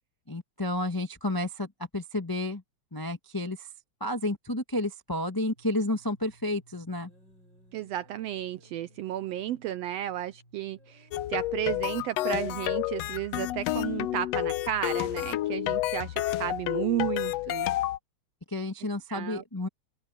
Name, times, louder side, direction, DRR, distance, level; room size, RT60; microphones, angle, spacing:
voice 1, 0.3-1.7 1.9-2.6 2.9-3.7 4.0-7.1 18.5-19.7, left 1 dB, 15° left, 0.7 m, -31 dB
sound 1, 5.5-11.5, equal, 35° right, 7.5 m, -59 dB
voice 2, 7.7-17.7 19.1-19.4, right 12 dB, 75° right, 1.5 m, -33 dB
sound 2, 11.1-18.0, left 15 dB, 75° left, 1.6 m, -30 dB
open air
omnidirectional pair, 3.4 m